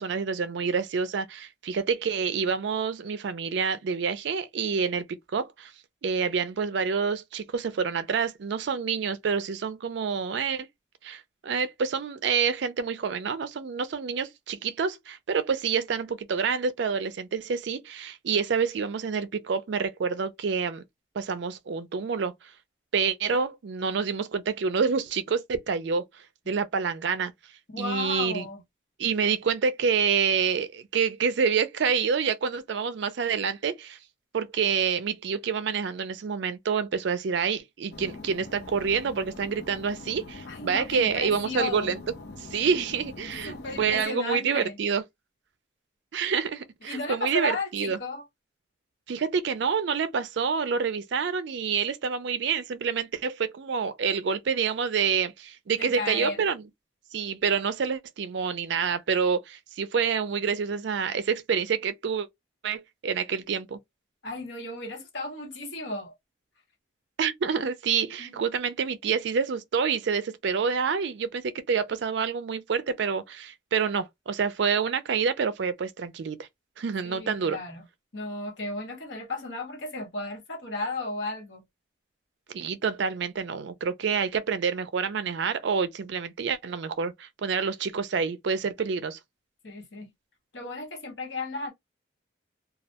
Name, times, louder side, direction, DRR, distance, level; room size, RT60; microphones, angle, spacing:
voice 1, 0.0-5.1 5.3-5.7 6.0-10.7 11.0-20.8 21.2-22.5 22.9-27.3 27.8-28.5 29.0-34.0 34.3-42.0 42.4-45.0 46.1-48.0 49.1-56.6 57.1-62.3 62.6-63.8 67.2-76.5 76.8-77.6 82.5-89.2, right 6 dB, 65° right, 0.4 m, -27 dB
voice 2, 27.7-28.6 40.5-42.0 43.4-44.8 46.8-48.2 55.8-56.4 64.2-66.1 68.2-68.4 77.0-77.8 78.1-81.6 89.6-90.1 90.5-91.7, left 2 dB, 70° left, 1.1 m, -34 dB
sound 1, 37.9-44.1, left 3 dB, 55° left, 0.5 m, -43 dB
2.3 x 2.1 x 2.8 m
head